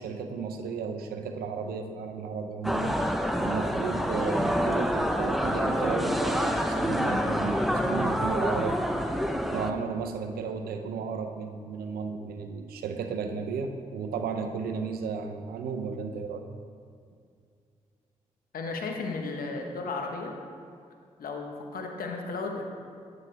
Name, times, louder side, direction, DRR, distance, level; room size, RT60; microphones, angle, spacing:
voice 1, 0.0-3.2 3.4-16.5, right 5 dB, 85° right, 6 dB, 0.6 m, -34 dB
sound 1, 2.6-9.7, equal, ahead, 0.7 m, -27 dB
voice 2, 18.5-20.3 21.2-22.6, left 3 dB, 75° left, 2 dB, 1.0 m, -34 dB
8.8 x 7.3 x 3.3 m, 2.3 s
supercardioid pair, 40°, 15 cm